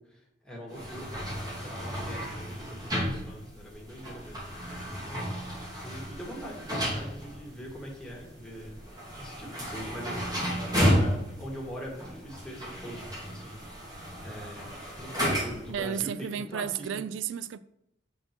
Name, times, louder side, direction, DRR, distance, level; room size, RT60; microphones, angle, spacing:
voice 1, 0.1-17.0, equal, 5° left, 1.9 m, -43 dB
sound 1, 0.7-15.8, equal, 20° right, 1.9 m, -33 dB
voice 2, 15.7-17.6, right 8 dB, 80° right, 0.3 m, -33 dB
7.7 x 4.4 x 4.5 m
head